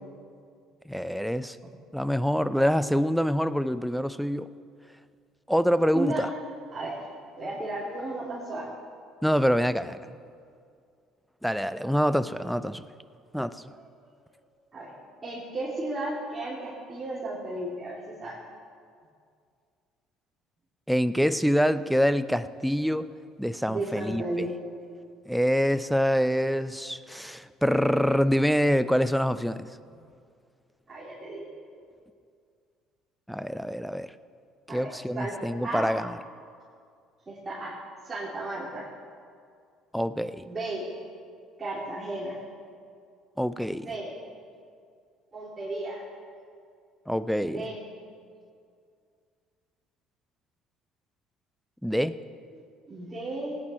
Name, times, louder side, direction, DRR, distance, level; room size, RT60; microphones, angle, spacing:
voice 1, 0.9-1.6 1.9-4.5 5.5-6.3 9.2-10.0 11.4-12.8 13.3-13.6 20.9-23.1 23.4-24.2 25.3-29.7 33.3-34.1 34.7-36.1 39.9-40.4 43.4-43.9 47.1-47.6 51.8-52.1, equal, ahead, 13 dB, 0.5 m, -25 dB
voice 2, 6.7-7.1 7.3-8.7 13.8-14.1 14.7-14.9 15.2-18.4 23.7-24.5 30.9-31.5 34.7-34.9 35.1-35.4 35.6-35.9 37.3-37.8 38.0-38.9 40.5-40.8 41.6-42.4 43.8-44.1 45.3-46.0 47.4-47.8 52.5-52.6 52.9-53.6, right 2 dB, 30° right, -8 dB, 2.9 m, -34 dB
17.0 x 9.6 x 4.4 m, 2.3 s
supercardioid pair, 70°, 0 cm